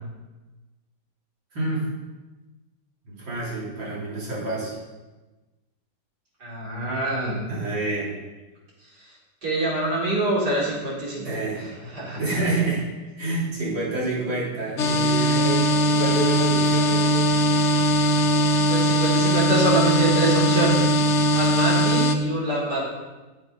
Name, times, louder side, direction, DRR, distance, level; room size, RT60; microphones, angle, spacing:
voice 1, 1.5-1.9 3.0-4.8 7.5-8.1 11.2-11.7 12.2-12.9 13.2-17.4, right 2 dB, 85° right, -6 dB, 4.2 m, -28 dB
voice 2, 6.4-7.4 9.0-9.1 9.4-12.4 18.7-20.9 21.3-22.8, right 2 dB, 60° right, -6 dB, 4.3 m, -25 dB
sound 1, 14.8-22.2, equal, 50° left, 0.9 m, -20 dB
11.5 x 7.8 x 5.3 m, 1.2 s
omnidirectional pair, 2.0 m